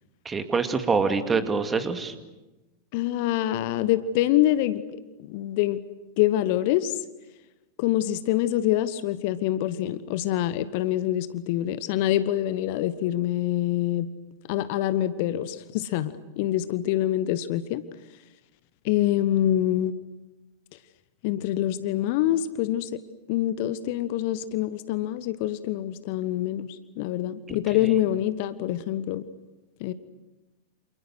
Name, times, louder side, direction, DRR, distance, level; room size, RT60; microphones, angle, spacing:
voice 1, 0.2-2.1 27.5-27.6 27.8-27.9, right 4 dB, 15° right, 8 dB, 2.5 m, -25 dB
voice 2, 2.9-4.8 5.2-5.8 6.2-6.9 7.8-14.1 14.5-17.8 18.8-19.9 21.2-23.0 23.3-26.7 27.0-29.3 29.8-29.9, left 13 dB, 50° left, 14 dB, 1.2 m, -25 dB
29.5 x 28.0 x 6.3 m, 1.1 s
figure-of-eight pair, 90°, 0 cm